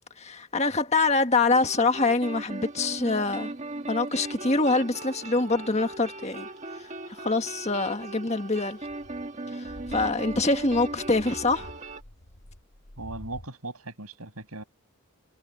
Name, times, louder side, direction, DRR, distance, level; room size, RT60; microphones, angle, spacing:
voice 1, 0.2-3.5 3.9-6.5 6.8-8.8 9.5-11.7, left 3 dB, 30° left, 1.7 m, -25 dB
sound 1, 1.5-12.0, right 2 dB, 35° right, 1.5 m, -38 dB
sound 2, 8.8-13.5, left 1 dB, 75° left, 2.5 m, -47 dB
voice 2, 13.0-14.6, right 2 dB, 80° right, 6.7 m, -38 dB
head